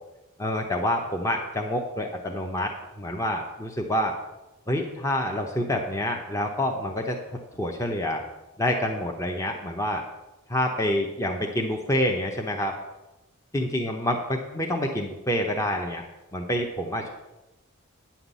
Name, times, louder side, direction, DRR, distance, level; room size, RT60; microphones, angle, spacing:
voice 1, 0.4-2.7 3.0-4.2 4.7-7.2 7.6-8.2 8.6-10.0 10.5-12.8 13.5-16.0 16.3-17.1, left 1 dB, 15° left, 1 dB, 0.8 m, -27 dB
9.7 x 5.9 x 8.2 m, 0.99 s
head